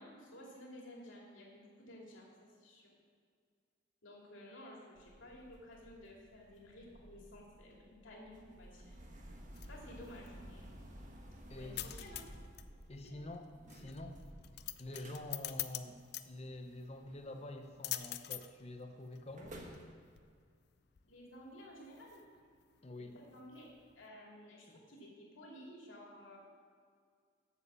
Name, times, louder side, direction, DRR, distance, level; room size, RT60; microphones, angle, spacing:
voice 1, 0.0-2.9 4.0-9.0 9.7-10.8 11.5-12.3 13.0-13.3 21.0-22.2 23.1-26.4, left 1 dB, 80° left, -2 dB, 2.6 m, -54 dB
sound 1, 5.0-18.1 18.4-18.7 19.1-19.9, equal, 40° right, 1.3 m, -55 dB
sound 2, 9.3-24.1, left 14 dB, 55° left, 0.4 m, -48 dB
voice 2, 11.5-12.0 12.9-14.2 14.8-16.0 16.3-19.6 22.8-23.1 24.7-24.8, left 1 dB, 30° left, 6 dB, 0.8 m, -47 dB
8.3 x 7.4 x 7.3 m, 2.1 s
head